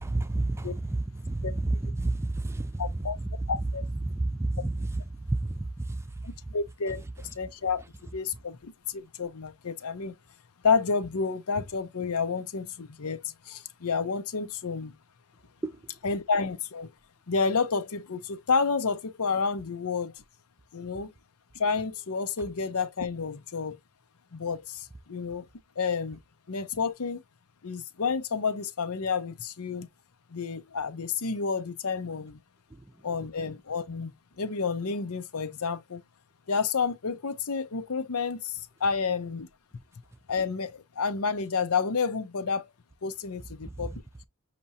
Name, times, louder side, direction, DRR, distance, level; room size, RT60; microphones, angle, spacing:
voice 1, 0.0-3.3 4.0-5.0 5.3-6.0 15.6-15.8 43.6-43.7, right 2 dB, 10° right, 0.4 m, -30 dB
voice 2, 2.8-3.2 3.5-3.8 6.2-7.0 7.3-7.8 8.1-10.2 10.6-14.9 16.0-16.9 17.3-20.1 20.7-21.1 21.5-23.8 24.3-25.5 25.8-26.2 26.5-27.2 27.6-29.9 30.3-32.4 33.0-36.0 36.5-39.5 40.3-42.7 43.0-43.9, left 5 dB, 90° left, 0.7 m, -30 dB
5.8 x 2.9 x 2.7 m
head